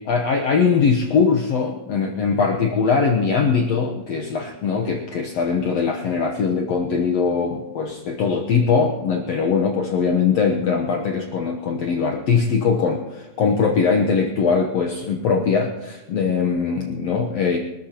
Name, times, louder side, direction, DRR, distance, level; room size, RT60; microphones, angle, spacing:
voice 1, 0.0-17.6, left 5 dB, 60° left, 2 dB, 2.0 m, -21 dB
25.0 x 13.5 x 3.0 m, 1.1 s
omnidirectional pair, 3.7 m